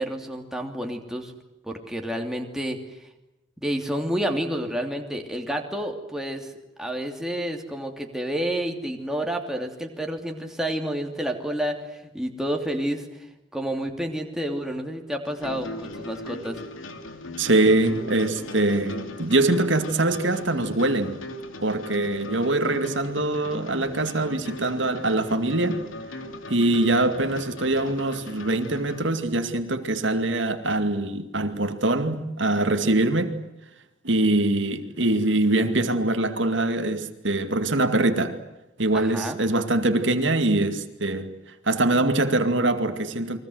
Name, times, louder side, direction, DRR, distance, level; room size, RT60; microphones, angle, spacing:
voice 1, 0.0-1.4 1.6-2.8 3.6-6.5 6.8-13.0 13.5-16.6 38.9-39.4, right 1 dB, 5° right, 2.9 m, -29 dB
sound 1, 15.2-29.1, left 1 dB, 85° left, 3.0 m, -39 dB
voice 2, 17.4-21.2 21.6-25.9 26.5-33.4 34.0-38.4 38.8-41.3 41.6-43.4, right 2 dB, 65° right, 2.3 m, -23 dB
30.0 x 23.5 x 8.0 m
head